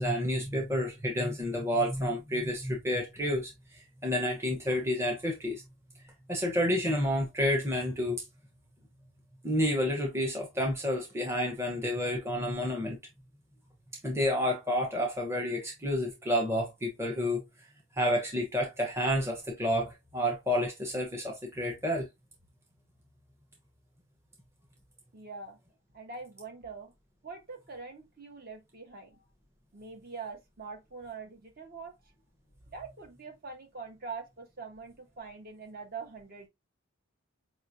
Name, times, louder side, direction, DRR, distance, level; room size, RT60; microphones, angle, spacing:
voice 1, 0.0-5.6 6.3-8.2 9.4-13.0 14.0-17.4 18.0-22.1, equal, 10° right, 0.8 m, -30 dB
voice 2, 25.1-25.6 25.9-26.9 27.2-29.2 29.7-31.9 32.7-36.5, right 4 dB, 40° right, 1.1 m, -44 dB
5.0 x 3.1 x 2.6 m
head